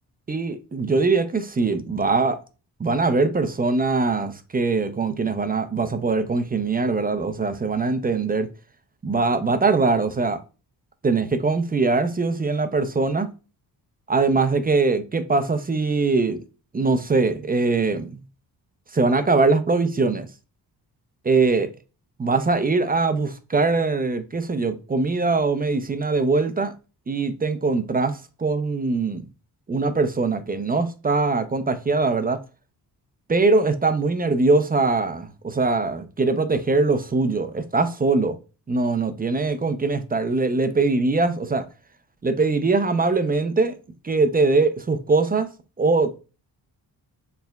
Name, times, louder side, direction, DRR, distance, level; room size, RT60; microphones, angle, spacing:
voice 1, 0.3-2.4 2.8-8.5 9.0-10.4 11.0-13.3 14.1-16.4 16.7-18.2 18.9-20.3 21.2-21.7 22.2-26.7 27.1-29.2 29.7-32.4 33.3-38.4 38.7-41.6 42.2-43.8 44.0-45.5 45.8-46.2, right 3 dB, 25° right, 0.5 m, -22 dB
4.5 x 3.3 x 2.2 m
cardioid pair, 90°, 40 cm